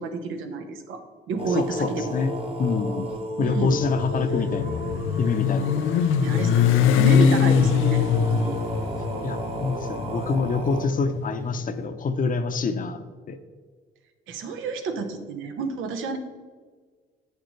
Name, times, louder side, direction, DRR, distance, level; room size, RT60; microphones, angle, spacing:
voice 1, 0.0-2.1 3.4-3.8 6.2-8.6 14.3-16.2, right 4 dB, 90° right, 7 dB, 1.0 m, -30 dB
voice 2, 1.4-2.3 2.6-3.1 3.4-4.9 5.2-6.0 9.2-13.4, left 4 dB, 45° left, 8 dB, 0.7 m, -26 dB
sound 1, 1.4-10.9, left 1 dB, 30° right, 1.0 m, -33 dB
Motorcycle, 3.4-11.6, left 8 dB, 85° left, 0.5 m, -22 dB
9.1 x 6.7 x 3.2 m, 1.6 s
cardioid pair, 90°, 20 cm